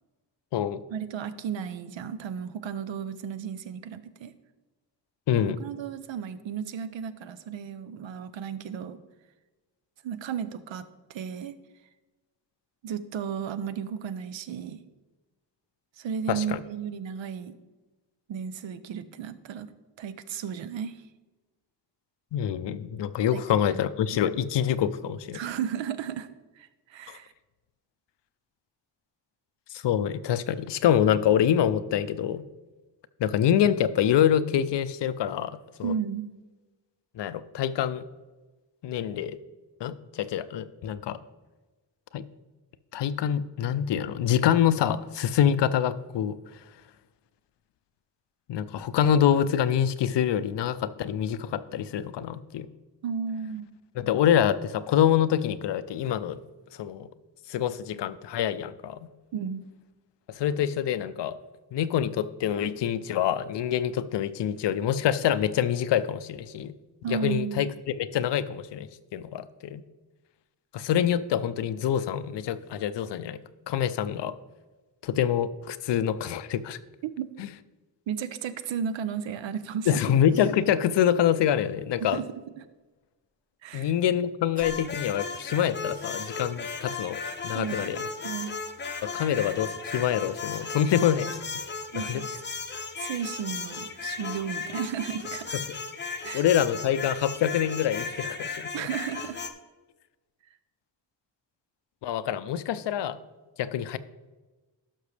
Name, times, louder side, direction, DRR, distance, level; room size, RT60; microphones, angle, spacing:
voice 1, 0.9-4.3 5.4-9.0 10.0-11.5 12.8-14.8 16.0-17.5 18.3-19.7 20.0-21.0 23.3-23.4 23.7-24.2 25.3-26.3 26.6-27.3 35.8-36.3 53.0-53.8 58.0-58.2 59.3-59.6 67.0-67.8 77.0-77.3 78.1-80.0 82.0-82.3 82.6-82.7 83.6-83.9 87.5-88.5 89.2-89.3 91.9-92.3 93.0-95.6 96.2-96.5 98.7-99.4, right 7 dB, 80° right, 13 dB, 0.7 m, -34 dB
voice 2, 5.3-5.6 16.3-16.6 22.3-25.4 27.1-27.2 29.7-32.4 33.2-35.9 37.2-38.0 38.8-39.4 39.8-41.2 42.1-42.3 42.9-46.4 48.5-52.7 54.0-56.4 56.8-57.1 57.5-59.0 60.4-61.4 61.7-66.7 67.1-68.9 69.1-69.8 70.7-73.4 73.7-74.3 75.0-76.8 77.4-77.5 79.9-82.2 83.7-88.0 89.0-91.4 92.0-92.2 95.7-95.8 96.3-98.9 102.0-103.2 103.6-104.0, left 9 dB, 70° left, 14 dB, 0.5 m, -26 dB
Cough, 80.3-80.6 82.0-82.2 84.5-85.0 85.9-86.2 87.7-87.9 89.9-90.2 92.0-92.1 92.6-92.9, right 1 dB, 20° right, 1.3 m, -52 dB
sound 1, 84.6-99.5, left 4 dB, 25° left, 0.6 m, -36 dB
12.0 x 6.0 x 3.3 m, 1.2 s
wide cardioid pair, 115°, 44 cm